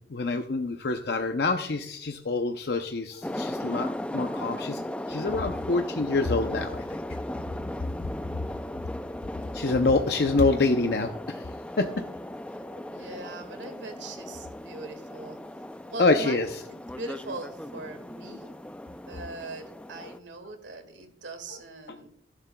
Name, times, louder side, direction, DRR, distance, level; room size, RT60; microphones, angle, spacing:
voice 1, 0.1-3.9 4.1-4.8 5.1-7.0 9.5-11.4 11.8-11.9 12.7-12.8 16.0-16.6, left 3 dB, 60° left, 5 dB, 0.6 m, -26 dB
sound 1, 3.2-20.2, left 1 dB, 5° left, 0.3 m, -37 dB
voice 2, 12.9-15.4 15.9-18.5 19.1-22.1, right 2 dB, 80° right, 6 dB, 1.9 m, -41 dB
15.0 x 11.5 x 2.2 m, 0.71 s
head